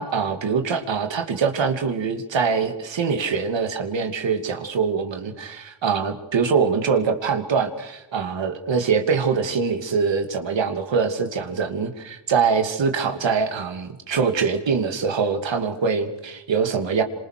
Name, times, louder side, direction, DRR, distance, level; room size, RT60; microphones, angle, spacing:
voice 1, 0.0-17.0, right 5 dB, 80° right, 6 dB, 2.8 m, -23 dB
27.5 x 26.5 x 6.8 m, 0.87 s
cardioid pair, 55°, 44 cm